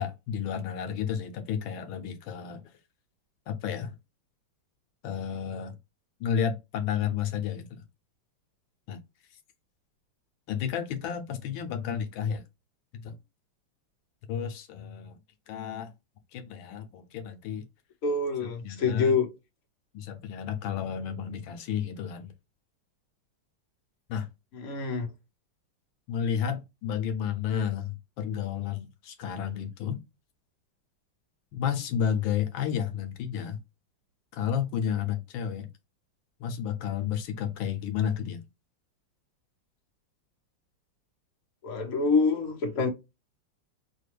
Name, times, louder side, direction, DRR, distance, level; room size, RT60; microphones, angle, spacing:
voice 1, 0.0-2.6 3.5-3.9 5.0-5.7 6.2-7.7 8.9-9.0 10.5-12.4 12.9-13.2 14.3-15.1 15.5-15.9 16.3-17.6 18.6-19.1 19.9-22.3 24.1-24.3 26.1-30.0 31.5-33.6 34.3-35.7 36.4-38.4, left 8 dB, 85° left, 1.4 m, -31 dB
voice 2, 18.0-19.3 24.5-25.1 41.6-42.9, left 4 dB, 50° left, 1.2 m, -26 dB
5.0 x 2.2 x 3.3 m
omnidirectional pair, 2.2 m